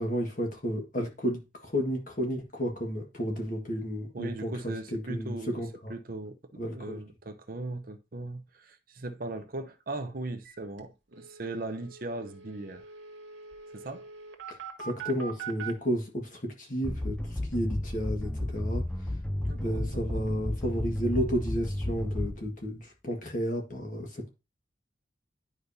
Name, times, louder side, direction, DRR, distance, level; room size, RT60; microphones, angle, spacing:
voice 1, 0.0-4.5 4.9-5.9 6.6-7.0 14.5-18.8 19.5-24.3, equal, 40° left, 1.7 m, -32 dB
voice 2, 4.1-5.6 5.9-6.4 6.6-12.9 13.7-14.1 19.4-20.3, right 2 dB, 45° right, 0.8 m, -38 dB
sound 1, 10.4-10.5 10.8-10.9 11.1-15.7, right 7 dB, 75° right, 1.4 m, -43 dB
sound 2, 16.8-22.7, left 1 dB, 5° left, 0.3 m, -33 dB
9.7 x 5.0 x 2.7 m
head